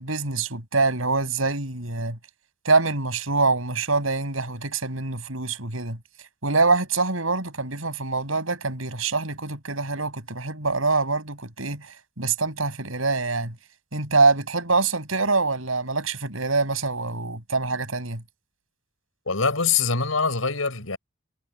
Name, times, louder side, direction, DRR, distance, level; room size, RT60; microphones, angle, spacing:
voice 1, 0.0-2.2 2.6-6.0 6.4-11.9 12.2-13.5 13.9-18.2, right 3 dB, 80° right, 6.2 m, -25 dB
voice 2, 19.3-21.0, left 5 dB, 85° left, 5.5 m, -24 dB
head